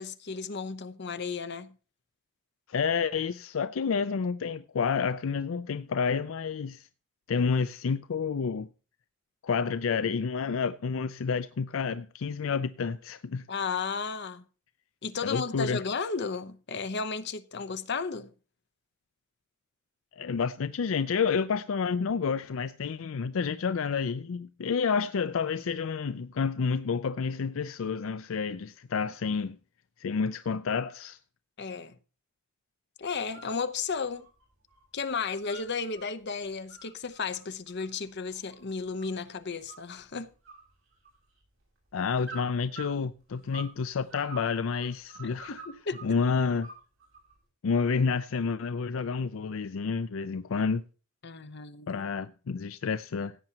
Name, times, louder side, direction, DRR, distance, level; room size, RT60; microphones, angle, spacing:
voice 1, 0.0-1.8 13.5-14.4 15.0-18.3 31.6-32.0 33.0-34.3 34.9-40.3 45.2-46.0 51.2-52.1, left 5 dB, 55° left, 0.9 m, -34 dB
voice 2, 2.7-6.9 7.3-8.7 9.4-13.5 15.2-15.8 20.1-29.6 30.0-31.2 41.9-45.6 46.0-46.7 47.6-50.8 51.9-53.3, left 5 dB, 80° left, 0.4 m, -29 dB
sound 1, 33.1-33.6 33.9-34.8 35.1-36.0 36.5-39.2 39.7-40.1 40.4-41.4 42.2-43.8 44.1-46.1 46.6-47.3, right 4 dB, 75° right, 7.2 m, -47 dB
16.5 x 8.8 x 2.9 m
head